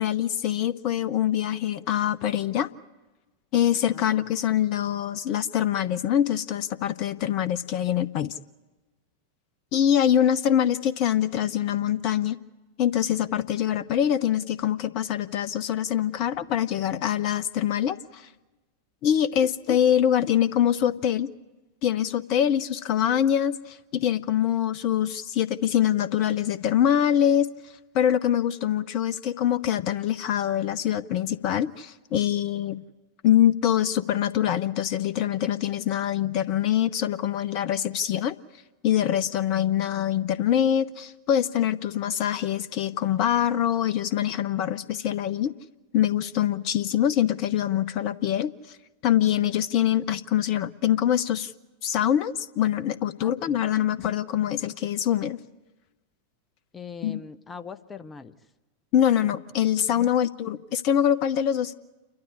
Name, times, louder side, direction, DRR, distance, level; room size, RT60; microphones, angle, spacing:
voice 1, 0.0-2.7 3.5-8.3 9.7-12.4 12.8-18.3 19.0-21.3 21.8-27.5 27.9-32.8 33.2-38.4 38.8-45.5 45.9-48.5 49.0-51.5 51.8-55.4 57.0-57.2 58.9-61.7, left 10 dB, 40° left, 0.6 m, -24 dB
voice 2, 53.2-53.6 56.7-58.3 59.9-60.1, left 5 dB, 15° left, 0.9 m, -41 dB
28.5 x 12.5 x 9.8 m
figure-of-eight pair, 90°, 0 cm